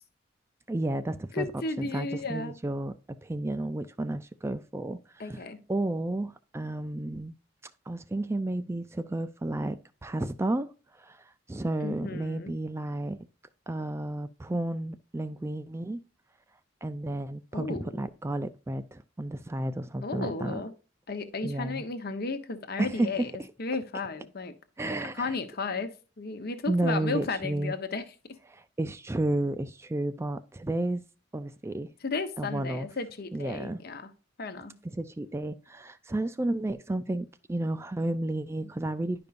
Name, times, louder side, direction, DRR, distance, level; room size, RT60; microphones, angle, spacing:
voice 1, 0.7-1.5 1.8-5.4 5.7-7.3 7.9-10.7 11.0-13.2 13.7-16.0 16.8-20.6 21.4-21.8 22.8-23.3 24.8-25.4 26.7-27.7 28.5-31.0 31.3-31.9 32.4-32.9 33.3-33.8 34.8-39.3, right 1 dB, 15° right, 0.3 m, -32 dB
voice 2, 1.3-2.5 5.2-5.6 11.8-12.5 17.5-18.1 20.0-20.7 21.1-23.3 23.6-24.5 24.9-28.0 32.0-34.1 34.4-34.8, left 3 dB, 50° left, 0.9 m, -34 dB
10.5 x 5.2 x 2.5 m
head